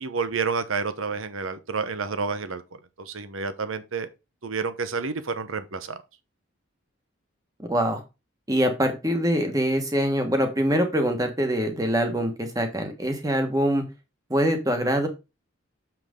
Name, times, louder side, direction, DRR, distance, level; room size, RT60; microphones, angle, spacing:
voice 1, 0.0-2.6 3.0-4.1 4.4-6.0, right 4 dB, 80° right, 0.9 m, -29 dB
voice 2, 7.6-8.0 8.5-13.8 14.3-15.1, equal, 15° right, 1.3 m, -24 dB
6.8 x 6.0 x 3.7 m
head